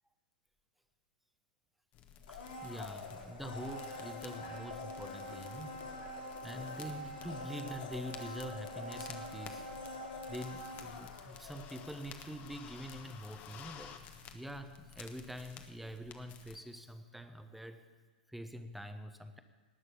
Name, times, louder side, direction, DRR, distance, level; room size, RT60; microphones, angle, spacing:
sound 1, 1.9-16.6, left 8 dB, 35° left, 1.3 m, -53 dB
Domestic sounds home sounds, 2.2-12.2 12.5-12.6, left 1 dB, 70° left, 3.7 m, -45 dB
voice 1, 2.3-5.9 6.4-9.7 10.3-17.9 18.3-19.4, equal, ahead, 9 dB, 1.0 m, -45 dB
19.0 x 6.5 x 8.4 m, 1.4 s
figure-of-eight pair, 105°, 5 cm